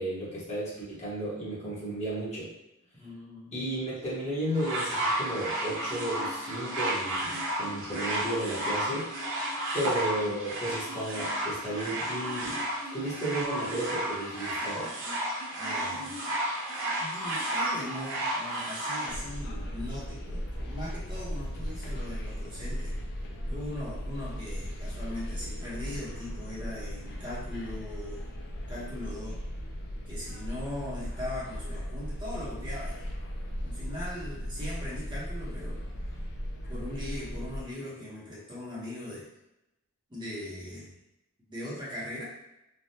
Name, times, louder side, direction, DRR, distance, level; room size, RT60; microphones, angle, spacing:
voice 1, 0.0-2.5 3.5-9.1 9.7-12.6 12.9-14.9, right 1 dB, 30° left, -8 dB, 1.0 m, -33 dB
voice 2, 2.9-3.6 15.6-16.2 17.0-23.0 23.5-28.2 28.7-29.4 30.1-33.1 33.6-35.8 36.7-39.2 40.1-40.9 41.5-42.3, left 1 dB, 20° right, -7 dB, 0.8 m, -39 dB
sound 1, 4.5-19.1 20.0-20.1, right 1 dB, 60° right, 0.8 m, -32 dB
sound 2, 19.1-37.6, equal, 50° left, 0.4 m, -37 dB
3.3 x 2.2 x 2.7 m, 0.91 s
head